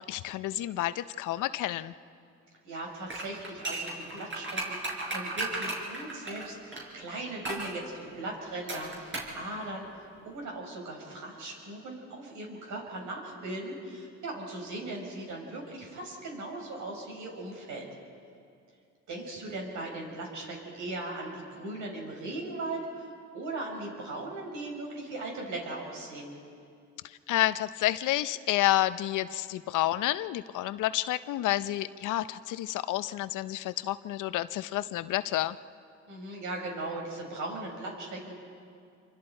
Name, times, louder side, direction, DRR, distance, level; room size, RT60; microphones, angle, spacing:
voice 1, 0.1-1.9 27.3-35.6, left 14 dB, 85° left, 14 dB, 0.7 m, -29 dB
voice 2, 2.6-9.9 10.2-17.9 19.1-23.1 23.3-26.4 36.1-38.4, right 2 dB, 75° right, 0 dB, 5.4 m, -38 dB
sound 1, 3.1-6.9 7.4-7.7 8.7-9.4 9.6-9.7, right 2 dB, 40° right, 5.4 m, -35 dB
27.0 x 24.0 x 4.4 m, 2.4 s
cardioid pair, 90°, 30 cm